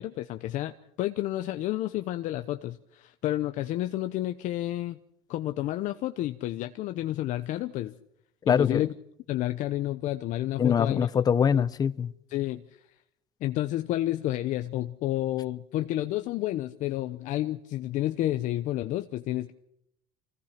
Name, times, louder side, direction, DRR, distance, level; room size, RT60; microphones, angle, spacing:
voice 1, 0.0-5.0 5.3-7.9 8.5-8.9 9.3-11.1 11.5-11.6 12.3-12.8 13.4-19.5, left 14 dB, 55° left, 0.9 m, -30 dB
voice 2, 8.5-8.8 10.6-12.1, left 7 dB, 25° left, 0.8 m, -23 dB
25.5 x 18.0 x 5.9 m
cardioid pair, 145°, 15 cm